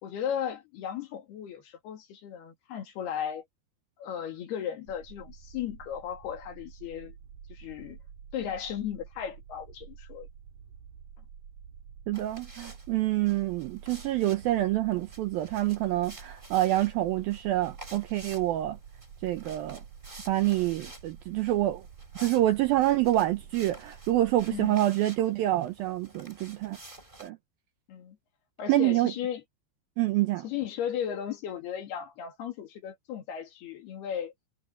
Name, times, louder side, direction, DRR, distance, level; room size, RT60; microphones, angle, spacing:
voice 1, 0.0-3.5 4.0-7.2 7.5-8.0 8.3-10.3 12.1-12.2 24.5-24.8 27.9-28.2 28.6-29.4 30.4-34.3, left 9 dB, 65° left, 4.2 m, -36 dB
sound 1, 4.9-24.7, right 7 dB, 55° right, 3.6 m, -49 dB
sound 2, 12.1-27.3, right 1 dB, 10° right, 3.2 m, -51 dB
voice 2, 12.1-18.8 19.2-19.8 20.3-21.8 22.2-26.8 27.2-27.4 28.7-29.1 30.0-30.5, right 15 dB, 80° right, 2.2 m, -27 dB
omnidirectional pair, 5.1 m